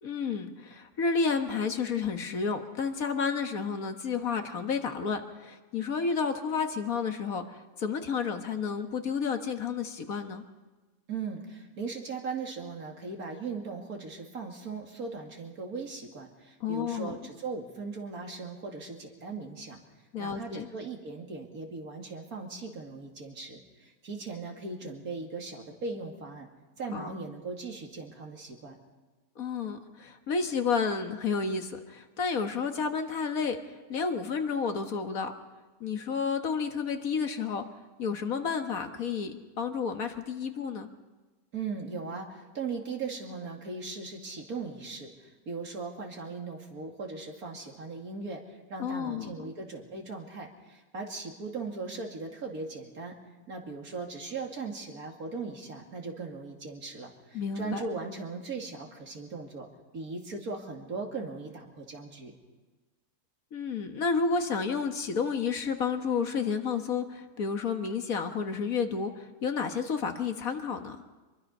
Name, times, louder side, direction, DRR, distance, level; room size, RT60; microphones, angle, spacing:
voice 1, 0.0-10.4 16.6-17.2 20.1-20.7 26.9-27.1 29.4-33.6 33.9-35.3 35.8-37.7 38.0-40.9 48.8-49.5 57.3-57.8 63.5-71.0, left 5 dB, 70° left, 6 dB, 1.8 m, -31 dB
voice 2, 11.1-19.8 20.2-26.5 26.8-28.7 41.5-48.4 48.7-53.1 53.5-59.7 59.9-62.3, right 4 dB, 80° right, 1 dB, 3.0 m, -38 dB
24.5 x 22.5 x 5.5 m, 1.3 s
omnidirectional pair, 1.5 m